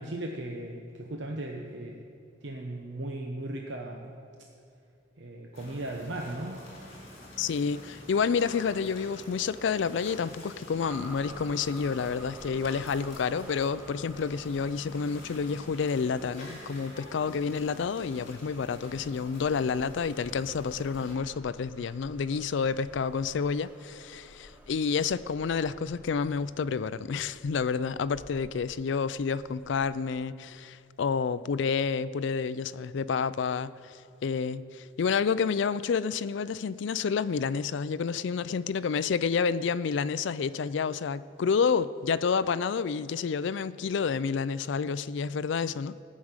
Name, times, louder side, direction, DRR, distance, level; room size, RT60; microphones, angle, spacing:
voice 1, 0.0-2.0 2.4-4.1 5.2-6.6, right 1 dB, 70° right, 0.9 m, -37 dB
sound 1, 5.5-21.1, left 1 dB, 45° left, 3.4 m, -48 dB
voice 2, 7.4-34.0 34.2-46.0, left 5 dB, 70° left, 0.4 m, -29 dB
sound 2, 10.8-29.9, equal, 5° right, 1.2 m, -52 dB
14.5 x 6.3 x 8.9 m
head